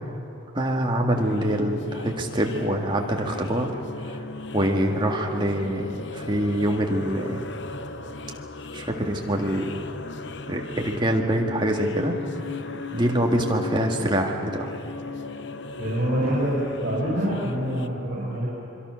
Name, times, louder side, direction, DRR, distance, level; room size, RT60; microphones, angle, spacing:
voice 1, 0.5-3.7 4.1-4.2 4.5-7.4 8.7-9.7 10.5-12.2 12.9-14.7, right 1 dB, 20° right, 1 dB, 2.0 m, -25 dB
sound 1, 1.1-17.9, left 3 dB, 55° left, 0.8 m, -37 dB
voice 2, 15.8-18.5, equal, 55° right, -7 dB, 6.7 m, -26 dB
26.0 x 23.0 x 6.4 m, 3.0 s
head